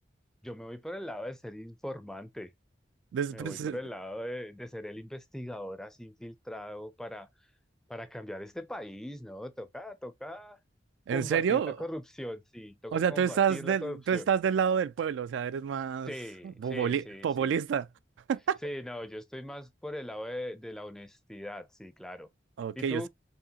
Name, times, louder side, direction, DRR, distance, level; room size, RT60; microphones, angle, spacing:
voice 1, 0.4-2.5 3.3-7.3 7.9-10.6 11.1-14.3 16.1-17.5 18.6-22.3 22.8-23.1, left 1 dB, 5° left, 0.4 m, -40 dB
voice 2, 3.1-3.8 11.1-11.8 12.9-16.1 16.4-17.9 18.3-18.6 22.6-23.1, right 7 dB, 80° right, 0.3 m, -28 dB
5.0 x 2.8 x 2.8 m
head